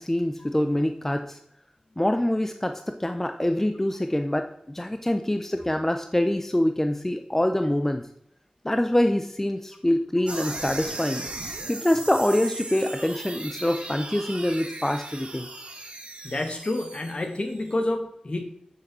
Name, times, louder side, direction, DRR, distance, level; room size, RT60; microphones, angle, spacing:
voice 1, 0.0-1.4 2.0-8.1 8.6-11.3 11.7-15.5, left 1 dB, 15° left, 8 dB, 0.6 m, -25 dB
sound 1, 10.3-17.7, right 2 dB, 50° right, 1.9 m, -37 dB
voice 2, 16.2-18.4, left 1 dB, 45° left, 5 dB, 1.7 m, -29 dB
7.0 x 6.6 x 7.6 m, 0.75 s
wide cardioid pair, 80°, 2 cm